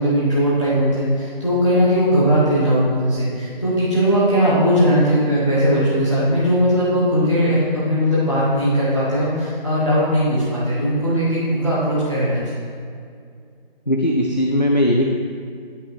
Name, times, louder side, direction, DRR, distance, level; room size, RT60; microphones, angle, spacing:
voice 1, 0.0-12.7, equal, 30° left, -10 dB, 1.1 m, -19 dB
voice 2, 13.9-15.1, equal, 45° left, 0 dB, 0.4 m, -18 dB
11.0 x 3.7 x 3.2 m, 2.3 s
figure-of-eight pair, 180°, 30 cm